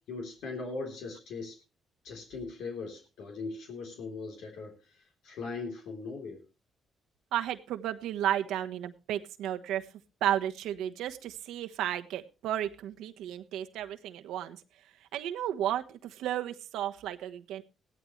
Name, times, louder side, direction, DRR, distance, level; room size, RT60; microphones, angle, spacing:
voice 1, 0.1-1.6 2.0-6.4, left 4 dB, 80° left, 2 dB, 3.6 m, -40 dB
voice 2, 7.3-9.8 10.2-14.6 15.1-17.6, right 11 dB, 90° right, 7 dB, 1.2 m, -33 dB
17.0 x 13.0 x 3.2 m, 0.31 s
cardioid pair, 90°, 0 cm